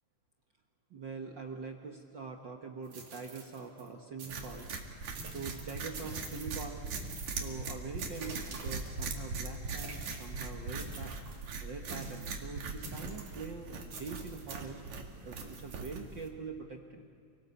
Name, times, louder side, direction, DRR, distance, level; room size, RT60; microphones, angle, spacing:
voice 1, 0.9-4.7 5.3-6.8 7.4-14.8 15.2-17.0, right 5 dB, 50° right, 2 dB, 1.6 m, -44 dB
sound 1, 2.8-3.9 4.2-4.7 5.2-6.7 6.9-7.6 8.0-9.2 9.8-10.3 10.8-11.5 11.9-12.4 12.8-13.5 13.9-14.6 15.4-15.9, right 4 dB, 85° right, 4.4 m, -46 dB
sound 2, 4.3-16.3, right 3 dB, 70° right, 3.4 m, -41 dB
27.5 x 19.0 x 8.2 m, 2.3 s
omnidirectional pair, 3.4 m